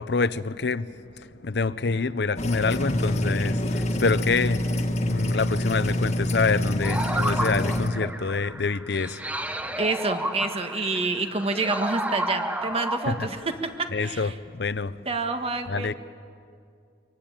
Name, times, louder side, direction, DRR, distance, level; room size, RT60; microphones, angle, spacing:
voice 1, 0.0-9.8 13.1-13.3 13.9-15.0 15.7-15.9, left 4 dB, 75° left, 0.7 m, -27 dB
sound 1, 2.4-7.9, left 1 dB, 40° left, 1.6 m, -26 dB
sound 2, 6.8-13.7, right 1 dB, 10° right, 1.0 m, -32 dB
voice 2, 9.8-14.3 15.0-15.9, right 3 dB, 35° right, 1.7 m, -28 dB
24.5 x 24.0 x 8.9 m
head